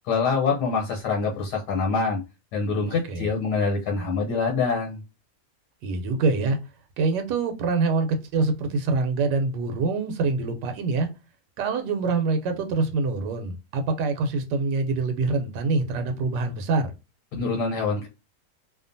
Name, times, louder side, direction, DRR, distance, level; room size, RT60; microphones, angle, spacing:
voice 1, 0.1-2.2 2.5-5.0 17.3-18.1, left 4 dB, 80° left, 1.4 m, -25 dB
voice 2, 5.8-6.6 7.0-11.1 11.6-16.9, right 3 dB, 90° right, 1.3 m, -25 dB
2.8 x 2.4 x 2.5 m
omnidirectional pair, 1.8 m